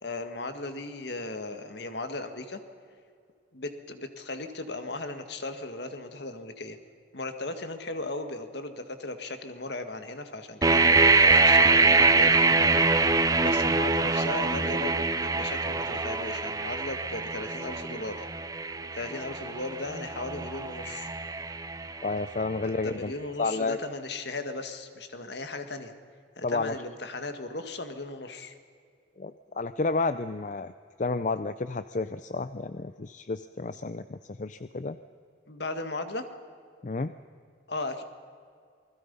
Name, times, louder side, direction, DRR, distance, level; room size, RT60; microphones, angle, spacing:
voice 1, 0.0-2.6 3.5-6.8 7.1-18.3 18.9-21.1 22.6-25.9 26.4-28.5 35.5-36.2 37.7-38.0, left 2 dB, 60° left, 7 dB, 1.9 m, -37 dB
sound 1, 10.6-22.4, right 3 dB, 20° right, 0.7 m, -24 dB
voice 2, 22.0-23.1 23.4-23.8 26.4-26.8 29.2-30.7 31.0-35.0 36.8-37.1, left 3 dB, 40° left, 12 dB, 0.5 m, -31 dB
28.5 x 21.0 x 5.5 m, 2.2 s
head